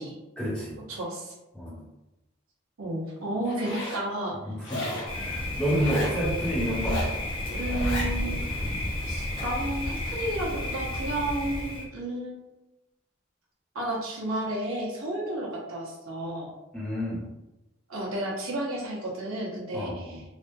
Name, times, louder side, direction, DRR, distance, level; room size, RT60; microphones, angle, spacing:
voice 1, 0.4-0.8 1.5-1.9 4.4-7.1 16.7-17.3 19.7-20.2, equal, 5° left, -9 dB, 1.1 m, -30 dB
voice 2, 0.9-1.3 2.8-4.3 7.4-8.6 9.1-12.4 13.7-16.5 17.9-20.2, right 1 dB, 85° right, -4 dB, 1.0 m, -32 dB
Zipper (clothing), 3.4-4.0 4.6-5.1 5.7-6.2 6.7-7.2 7.6-8.1, left 1 dB, 65° left, 0.8 m, -34 dB
Thunder, 5.1-11.8, left 1 dB, 25° left, 0.6 m, -31 dB
3.4 x 2.3 x 2.6 m, 0.98 s
head